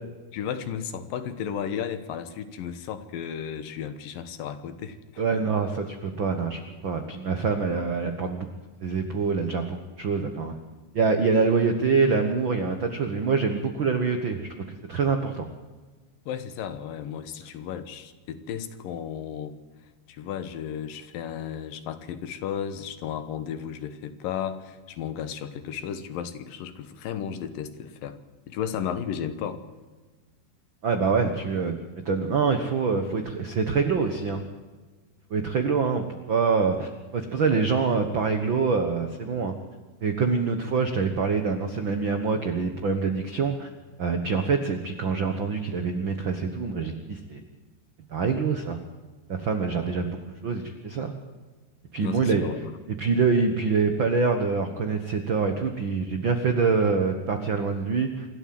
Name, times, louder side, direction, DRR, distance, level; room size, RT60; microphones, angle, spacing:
voice 1, 0.3-5.2 16.3-19.5 20.1-28.2 28.5-29.6 52.0-52.7, left 8 dB, 70° left, 11 dB, 2.7 m, -34 dB
voice 2, 5.2-8.5 8.8-10.6 10.9-14.5 14.9-15.5 30.8-34.4 35.3-39.5 40.0-43.7 44.0-47.4 48.1-48.8 49.3-50.2 50.4-51.1 51.9-52.4 53.0-58.3, right 5 dB, 80° right, 6 dB, 1.0 m, -25 dB
27.5 x 13.0 x 7.8 m, 1.3 s
omnidirectional pair, 4.5 m